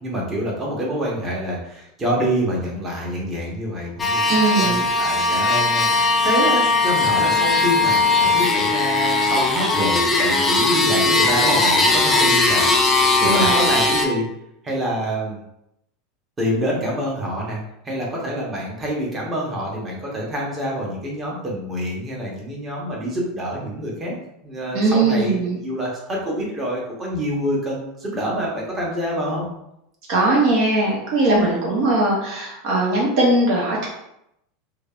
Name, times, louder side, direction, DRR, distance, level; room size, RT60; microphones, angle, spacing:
voice 1, 0.0-12.6 13.2-14.2 14.6-15.4 16.4-17.6 17.8-24.2 24.4-29.5, equal, 25° right, -3 dB, 1.1 m, -26 dB
sound 1, 4.0-14.1, left 3 dB, 20° left, 0.5 m, -18 dB
voice 2, 4.3-4.8 13.2-13.6 24.7-25.6 30.1-33.9, right 2 dB, 60° right, -4 dB, 0.7 m, -19 dB
3.1 x 2.3 x 2.4 m, 0.80 s
hypercardioid pair, 85°, 0 cm